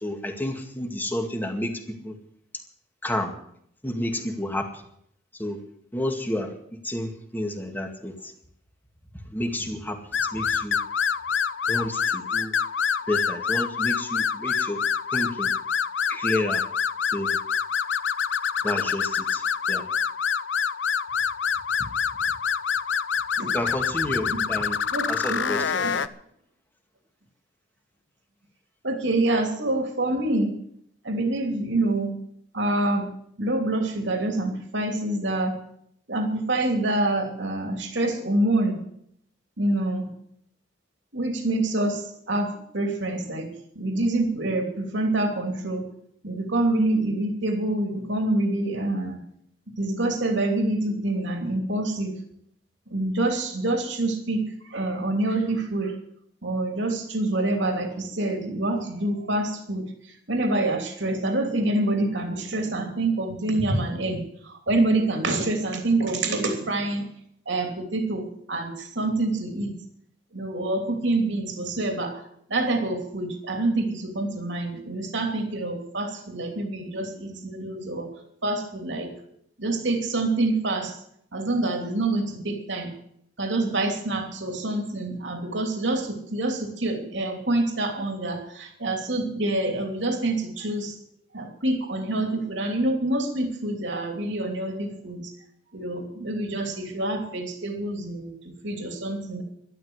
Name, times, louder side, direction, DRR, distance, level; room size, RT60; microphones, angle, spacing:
voice 1, 0.0-2.1 3.0-3.3 3.8-4.7 5.4-5.6 5.9-6.5 6.8-8.3 9.3-10.0 10.3-10.8 11.7-12.5 13.1-14.8 15.1-15.5 16.1-16.6 17.1-17.4 18.6-19.4 19.7-19.8 21.8-21.9 23.5-24.8 25.1-25.9, left 1 dB, 10° left, 4 dB, 2.1 m, -30 dB
sound 1, 10.1-26.1, left 7 dB, 85° left, 0.7 m, -26 dB
voice 2, 24.9-25.5 28.8-30.5 31.0-32.1 32.5-33.1 33.4-35.6 36.1-38.8 39.6-40.1 41.1-45.9 46.2-49.2 49.8-52.1 52.9-54.4 54.7-55.9 56.4-59.9 60.3-67.1 67.5-69.7 70.3-72.2 72.5-78.1 78.4-79.1 79.6-80.9 81.3-82.9 83.4-90.9 91.3-95.3 95.7-99.4, right 2 dB, 75° right, 3 dB, 3.0 m, -26 dB
12.5 x 12.0 x 8.1 m, 0.70 s
head